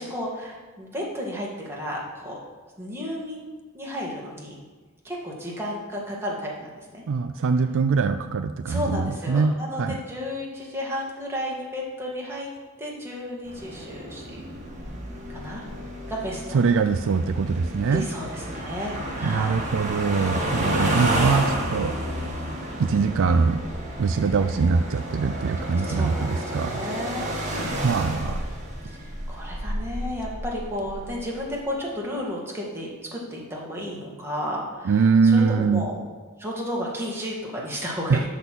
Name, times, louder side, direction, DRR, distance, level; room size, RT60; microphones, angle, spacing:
voice 1, 0.0-2.4 2.8-4.5 5.0-7.0 8.7-12.5 12.8-14.2 15.3-15.6 16.1-16.6 17.9-19.6 20.7-21.2 24.1-24.4 25.9-27.9 28.8-36.0 36.4-38.3, equal, 10° right, -3 dB, 2.0 m, -33 dB
voice 2, 7.1-10.0 16.5-18.1 19.2-21.9 22.8-23.6 24.0-26.8 27.4-28.4 34.8-35.9 38.1-38.3, right 4 dB, 60° right, 9 dB, 0.4 m, -23 dB
sound 1, 13.5-31.6, right 1 dB, 35° right, 1.8 m, -31 dB
12.5 x 4.3 x 6.1 m, 1.4 s
head